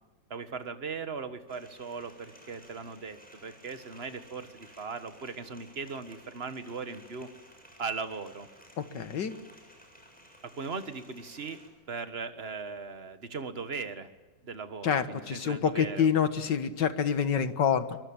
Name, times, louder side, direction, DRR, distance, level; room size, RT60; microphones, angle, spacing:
voice 1, 0.3-7.3 7.8-8.5 10.4-11.6 11.9-14.1 14.4-16.1, right 4 dB, 35° right, 10 dB, 1.7 m, -38 dB
sound 1, 1.5-11.7, equal, 5° left, 7.2 m, -56 dB
voice 2, 8.8-9.3 14.8-18.0, left 7 dB, 80° left, 11 dB, 2.1 m, -27 dB
23.5 x 23.0 x 8.9 m, 1.3 s
omnidirectional pair, 1.9 m